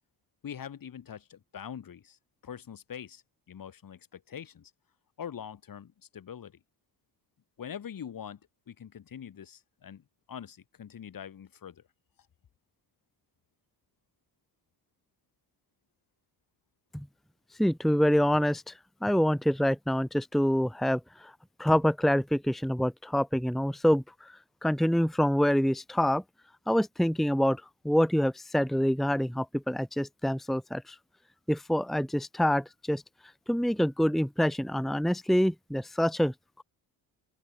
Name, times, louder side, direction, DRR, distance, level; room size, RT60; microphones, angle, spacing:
voice 1, 0.4-2.2 2.4-3.2 3.5-4.7 5.2-6.6 7.6-8.4 8.7-11.8, left 8 dB, 50° left, 3.6 m, -43 dB
voice 2, 17.6-21.3 21.6-26.2 26.7-31.0 31.5-33.0 33.5-36.6, equal, ahead, 1.3 m, -26 dB
open air
cardioid pair, 80°, 42 cm